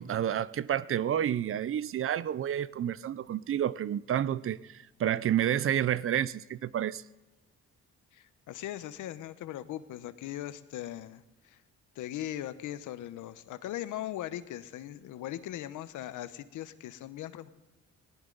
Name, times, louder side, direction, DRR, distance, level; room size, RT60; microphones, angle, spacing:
voice 1, 0.0-7.0, right 10 dB, 45° right, 0.5 m, -30 dB
voice 2, 8.1-11.6 11.9-17.5, left 12 dB, 85° left, 0.9 m, -39 dB
18.5 x 18.0 x 3.9 m
cardioid pair, 90°, 30 cm